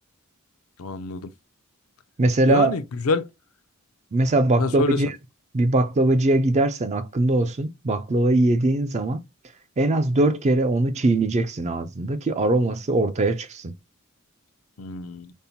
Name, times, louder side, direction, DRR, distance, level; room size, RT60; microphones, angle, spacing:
voice 1, 0.8-1.3 2.5-3.3 4.6-5.0 14.8-15.3, left 3 dB, 70° left, 0.5 m, -26 dB
voice 2, 2.2-2.8 4.1-5.1 5.5-9.2 9.8-13.7, right 2 dB, 30° right, 0.4 m, -21 dB
5.3 x 2.1 x 2.7 m
head